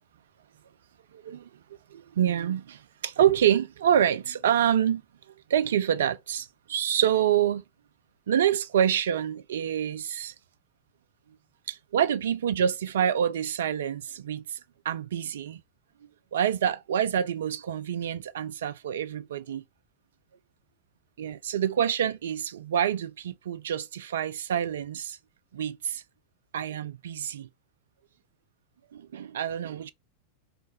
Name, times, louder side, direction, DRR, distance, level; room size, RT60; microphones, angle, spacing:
voice 1, 1.1-1.5 1.9-5.0 5.5-7.6 8.3-10.3 11.7-14.6 14.8-15.6 16.3-19.6 21.2-25.2 25.5-26.0 26.5-27.5 28.9-29.9, right 9 dB, 60° right, 0.3 m, -27 dB
3.2 x 2.2 x 3.9 m
figure-of-eight pair, 90°, 0 cm